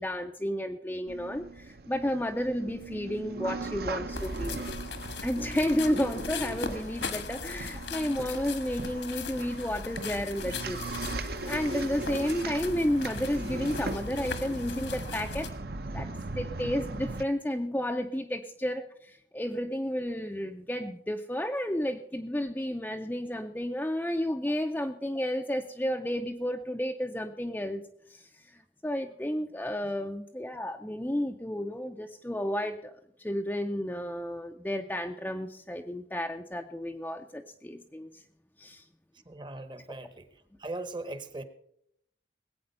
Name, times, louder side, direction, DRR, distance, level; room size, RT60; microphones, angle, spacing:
voice 1, 0.0-4.6 5.2-10.8 11.1-15.5 15.9-16.1 16.4-27.8 28.1-38.2 38.6-38.8, equal, 10° left, 3 dB, 0.4 m, -32 dB
sound 1, 1.1-17.2, right 2 dB, 55° right, 0.7 m, -38 dB
sound 2, 4.1-15.5, left 4 dB, 75° left, 1.4 m, -39 dB
voice 2, 39.3-40.3 40.6-41.4, right 2 dB, 25° right, 12 dB, 0.9 m, -39 dB
19.5 x 8.6 x 5.4 m, 0.75 s
head